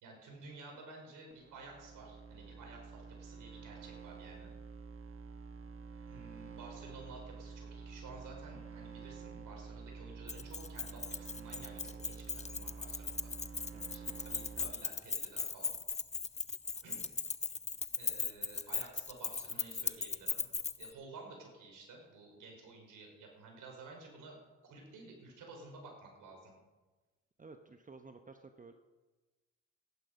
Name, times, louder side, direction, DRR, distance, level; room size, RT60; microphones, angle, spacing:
voice 1, 0.0-4.5 6.1-13.3 13.9-15.7 16.8-17.1 18.0-20.4 20.8-24.4 24.6-26.5, right 3 dB, 75° right, 1 dB, 4.8 m, -53 dB
sound 1, 1.3-14.7, right 5 dB, 40° right, 1.4 m, -49 dB
Keys jangling, 10.3-20.9, left 4 dB, 20° left, 0.8 m, -38 dB
voice 2, 27.4-28.7, right 4 dB, 25° right, 6 dB, 1.0 m, -53 dB
15.0 x 11.0 x 5.3 m, 1.2 s
supercardioid pair, 60°, 32 cm